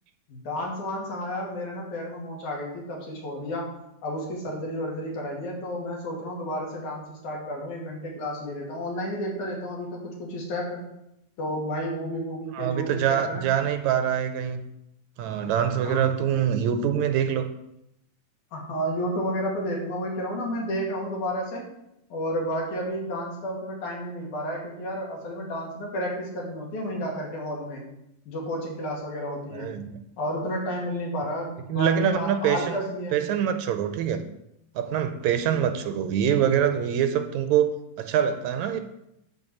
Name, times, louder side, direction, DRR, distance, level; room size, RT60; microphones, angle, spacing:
voice 1, 0.3-3.7 4.0-10.8 11.4-13.5 15.8-16.1 18.5-21.7 22.1-27.9 28.3-29.8 30.2-33.2, equal, 75° left, -1 dB, 3.7 m, -31 dB
voice 2, 12.5-14.6 15.2-17.5 29.5-30.0 31.7-32.8 33.1-34.2 34.8-38.8, right 9 dB, 80° right, 8 dB, 1.9 m, -24 dB
10.5 x 4.6 x 7.7 m, 0.83 s
omnidirectional pair, 3.5 m